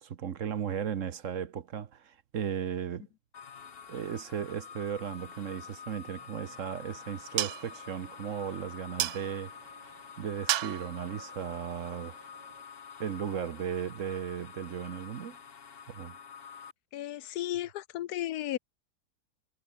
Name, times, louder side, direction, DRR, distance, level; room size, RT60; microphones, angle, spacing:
voice 1, 0.0-3.1 3.9-9.9 10.2-12.2 13.0-15.4 15.9-16.2, right 8 dB, 55° right, 1.2 m, -36 dB
sound 1, 3.3-16.7, left 7 dB, 40° left, 1.1 m, -48 dB
sound 2, 6.2-12.6, right 13 dB, 75° right, 1.2 m, -38 dB
voice 2, 16.9-18.6, left 13 dB, 75° left, 1.1 m, -34 dB
omnidirectional pair, 1.7 m